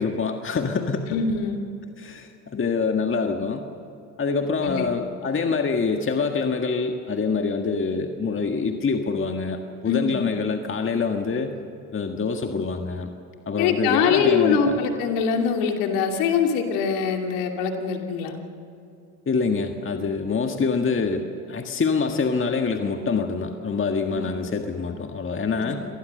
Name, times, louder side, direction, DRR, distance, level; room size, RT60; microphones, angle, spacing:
voice 1, 0.0-1.0 2.0-3.6 4.2-11.6 11.9-13.1 13.4-14.8 19.2-25.9, left 4 dB, 25° left, 4 dB, 1.8 m, -25 dB
voice 2, 1.1-1.6 4.6-4.9 9.9-10.2 13.6-18.4 24.1-24.3 25.6-25.7, left 6 dB, 70° left, 3 dB, 2.8 m, -23 dB
25.5 x 19.0 x 6.7 m, 2.7 s
hypercardioid pair, 75°, 46 cm